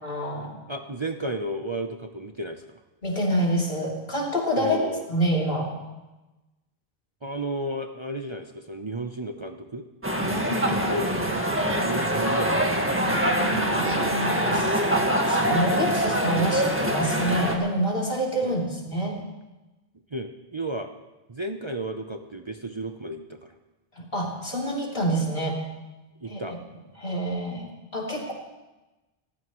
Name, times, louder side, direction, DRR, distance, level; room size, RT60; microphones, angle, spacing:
voice 1, 0.0-0.6 3.0-4.8 5.1-5.7 10.2-10.8 13.2-19.2 24.0-25.6 26.3-26.6 27.0-28.3, equal, 60° left, -2 dB, 3.5 m, -27 dB
voice 2, 0.7-2.8 4.6-5.0 7.2-9.9 10.6-13.1 15.9-16.1 18.4-18.6 20.1-20.9 21.3-23.6 26.2-26.6, right 1 dB, 30° right, 4 dB, 0.8 m, -33 dB
sound 1, 10.0-17.5, right 1 dB, 10° right, 1.7 m, -24 dB
28.5 x 15.0 x 3.1 m, 1.1 s
omnidirectional pair, 1.0 m